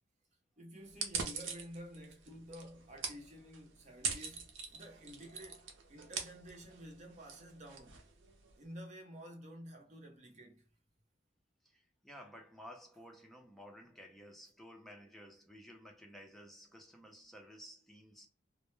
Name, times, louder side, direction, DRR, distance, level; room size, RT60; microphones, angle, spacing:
voice 1, 0.6-8.0 8.6-10.7, equal, 40° right, 0.7 m, -51 dB
sound 1, 0.9-8.6, right 5 dB, 80° right, 0.6 m, -44 dB
voice 2, 11.6-18.3, equal, ahead, 0.5 m, -54 dB
2.1 x 2.1 x 3.0 m
head